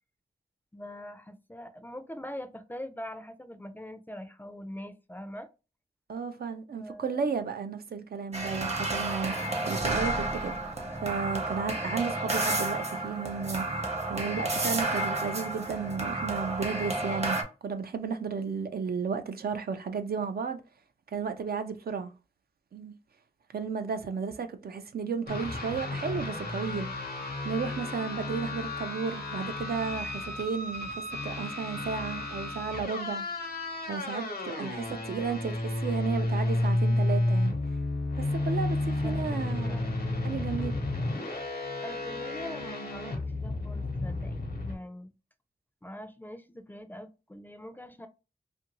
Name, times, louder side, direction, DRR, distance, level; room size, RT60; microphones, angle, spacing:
voice 1, 0.7-5.5 6.7-7.3 9.3-9.6 35.1-35.2 39.0-39.2 39.6-39.9 40.6-40.8 41.8-45.1 45.8-48.1, left 1 dB, 10° left, 0.4 m, -43 dB
voice 2, 6.1-10.6 11.0-20.6 21.1-22.1 22.7-22.9 23.5-26.9 27.4-33.3 33.8-37.5 38.2-39.8 40.2-40.7, right 5 dB, 75° right, 0.4 m, -33 dB
sound 1, 8.3-17.4, right 2 dB, 45° right, 0.7 m, -31 dB
sound 2, 25.3-44.8, left 2 dB, 80° left, 0.8 m, -32 dB
2.6 x 2.5 x 2.9 m
wide cardioid pair, 80°, 16 cm